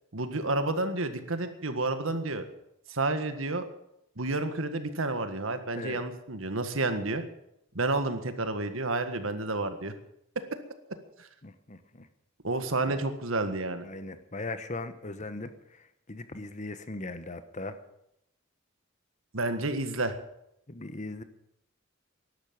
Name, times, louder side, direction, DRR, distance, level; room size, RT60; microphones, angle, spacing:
voice 1, 0.1-2.4 2.9-3.6 4.2-7.2 7.7-9.9 12.4-13.8 19.3-20.1, right 2 dB, 75° right, 9 dB, 1.7 m, -30 dB
voice 2, 11.4-12.1 12.9-13.1 13.8-17.8 20.7-21.2, left 2 dB, 35° left, 11 dB, 1.2 m, -39 dB
13.0 x 11.5 x 8.8 m, 0.80 s
head